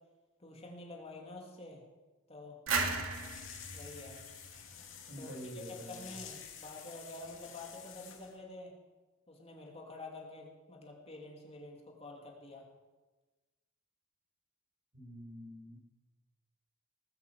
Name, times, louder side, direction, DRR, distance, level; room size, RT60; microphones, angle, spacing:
voice 1, 0.4-1.8 2.3-2.6 3.7-4.2 5.2-5.4 5.7-8.7 9.3-12.6, left 2 dB, 30° left, -1 dB, 2.8 m, -48 dB
sound 1, 2.7-5.4, right 4 dB, 80° right, 2.4 m, -37 dB
sound 2, 3.1-8.4, left 8 dB, 70° left, 2.8 m, -50 dB
voice 2, 5.1-6.1 14.9-15.8, equal, 65° right, -1 dB, 5.8 m, -47 dB
19.0 x 8.4 x 7.8 m, 1.2 s
head